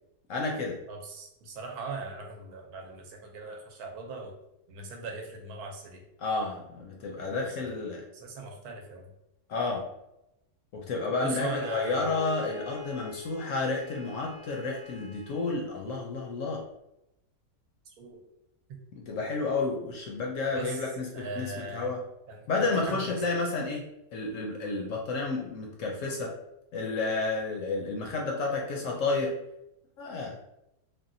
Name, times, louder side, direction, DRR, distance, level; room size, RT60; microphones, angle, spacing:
voice 1, 0.3-0.8 6.2-8.0 9.5-9.9 10.7-16.6 18.9-22.0 22.5-23.8 24.1-26.4 26.7-29.4 30.0-30.4, left 3 dB, 70° left, -1 dB, 0.8 m, -31 dB
voice 2, 0.9-4.4 4.7-6.0 7.6-7.7 8.1-9.1 10.8-10.9 11.2-12.1 17.8-18.2 18.7-18.8 20.5-21.9 22.3-23.2, right 3 dB, 80° right, 1 dB, 1.1 m, -40 dB
Bowed string instrument, 11.4-15.6, equal, 45° right, 0.3 m, -44 dB
3.4 x 2.2 x 2.5 m, 0.87 s
omnidirectional pair, 1.6 m